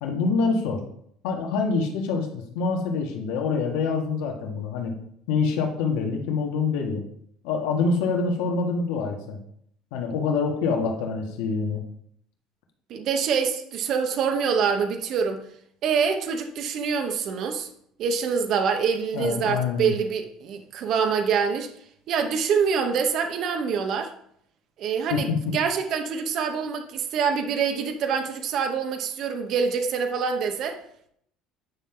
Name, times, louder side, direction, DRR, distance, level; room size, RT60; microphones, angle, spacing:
voice 1, 0.0-0.8 1.2-4.9 5.3-7.0 7.4-9.4 9.9-11.8 19.1-19.9 25.1-25.4, left 4 dB, 90° left, 2 dB, 1.6 m, -26 dB
voice 2, 12.9-15.4 15.8-17.7 18.0-21.7 22.1-24.1 24.8-30.8, right 6 dB, 45° right, 5 dB, 0.9 m, -25 dB
9.8 x 5.8 x 3.8 m, 0.69 s
cardioid pair, 165°, 0 cm